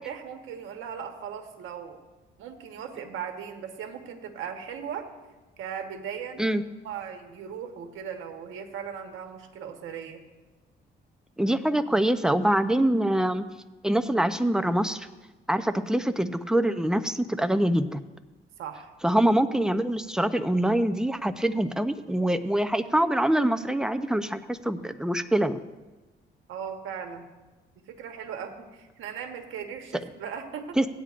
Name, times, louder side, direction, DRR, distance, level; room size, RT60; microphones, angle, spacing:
voice 1, 0.0-2.0 2.4-5.1 5.6-6.5 6.8-10.3 18.6-18.9 26.5-27.3 27.9-30.8, right 7 dB, 85° right, 5 dB, 1.2 m, -38 dB
voice 2, 11.4-13.4 13.8-15.1 15.5-18.0 19.0-25.6 30.8-30.9, right 1 dB, 5° right, 9 dB, 0.6 m, -24 dB
16.5 x 9.8 x 2.5 m, 1.2 s
cardioid pair, 90°, 20 cm